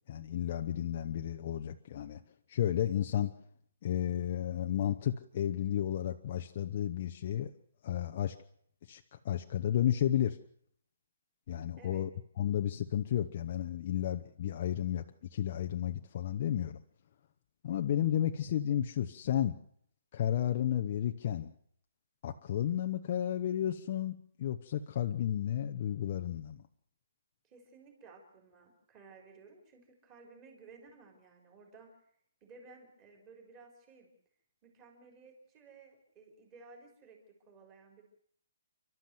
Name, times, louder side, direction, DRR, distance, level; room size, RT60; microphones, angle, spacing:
voice 1, 0.1-2.2 2.5-3.3 3.8-7.5 7.8-8.3 8.9-10.4 11.5-12.1 12.4-15.0 15.3-16.8 17.6-19.5 20.1-21.5 22.2-26.6, left 11 dB, 30° left, 4 dB, 0.8 m, -32 dB
voice 2, 27.4-31.9 32.4-34.1 34.6-38.0, right 4 dB, 15° right, 2 dB, 4.4 m, -56 dB
30.0 x 12.5 x 7.8 m, 0.67 s
hypercardioid pair, 180°, 0 cm